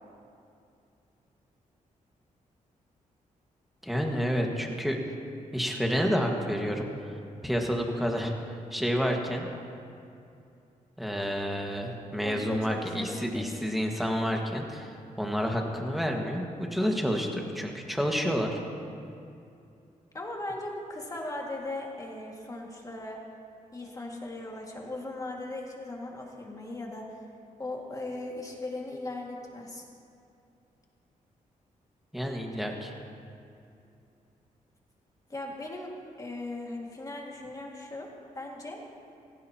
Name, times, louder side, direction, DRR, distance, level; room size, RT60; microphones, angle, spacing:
voice 1, 3.8-5.0 5.5-7.1 7.4-9.5 11.0-18.6 32.1-32.9, equal, ahead, 1 dB, 1.7 m, -29 dB
voice 2, 12.2-13.5 20.1-23.3 23.7-27.2 27.6-29.8 35.3-38.8, left 2 dB, 25° left, -1 dB, 2.1 m, -38 dB
16.0 x 15.5 x 2.9 m, 2.6 s
cardioid pair, 95°, 14 cm